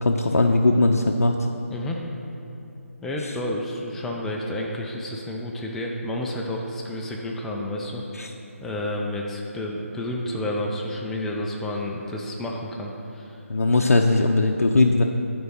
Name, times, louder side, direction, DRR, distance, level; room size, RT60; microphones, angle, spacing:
voice 1, 0.0-1.4 3.2-3.3 8.1-8.3 13.5-15.0, left 2 dB, 85° left, 2 dB, 0.5 m, -19 dB
voice 2, 1.7-2.0 3.0-8.0 8.6-13.4, left 1 dB, 5° left, -1 dB, 0.3 m, -30 dB
9.4 x 4.6 x 5.4 m, 2.8 s
figure-of-eight pair, 155°, 8 cm